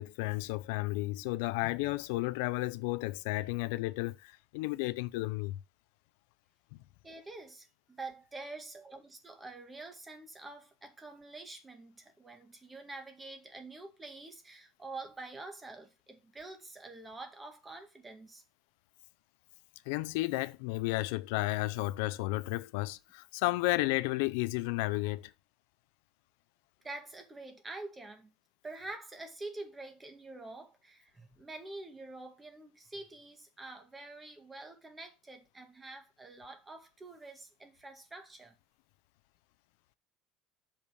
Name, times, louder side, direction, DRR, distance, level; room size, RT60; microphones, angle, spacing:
voice 1, 0.0-5.6 6.7-6.8 19.9-25.3, left 20 dB, 90° left, 0.5 m, -33 dB
voice 2, 7.0-18.4 26.8-28.3 28.6-38.6, right 2 dB, 15° right, 1.9 m, -47 dB
6.9 x 5.4 x 6.3 m
cardioid pair, 155°, 0 cm